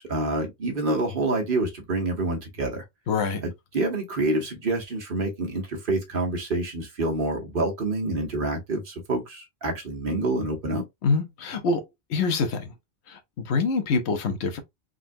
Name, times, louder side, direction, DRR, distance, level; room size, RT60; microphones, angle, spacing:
voice 1, 0.0-2.8 3.4-10.8, right 2 dB, 55° right, 1.2 m, -27 dB
voice 2, 3.1-3.4 11.0-11.8 12.1-12.7 13.1-14.6, left 4 dB, 90° left, 1.0 m, -25 dB
3.7 x 2.3 x 2.6 m
omnidirectional pair, 1.1 m